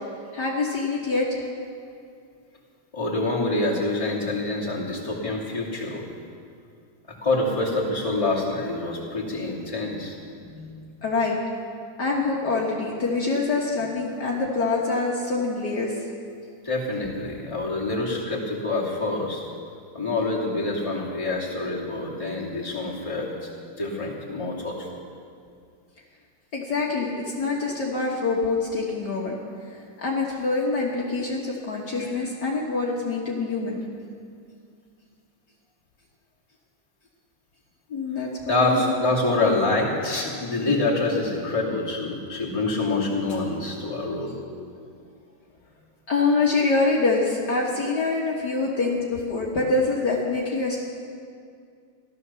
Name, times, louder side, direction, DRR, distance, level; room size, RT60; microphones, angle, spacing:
voice 1, 0.3-1.4 10.4-11.4 12.0-15.9 26.5-27.1 27.4-29.4 30.0-33.8 37.9-38.3 38.6-38.9 44.4-44.6 46.1-50.8, left 3 dB, 55° left, -3 dB, 2.0 m, -25 dB
voice 2, 2.9-6.0 7.2-10.2 16.6-19.4 19.9-23.5 23.8-24.9 32.0-32.1 38.5-44.3, left 2 dB, 15° left, -5 dB, 2.5 m, -26 dB
16.0 x 12.5 x 6.9 m, 2.3 s
omnidirectional pair, 2.3 m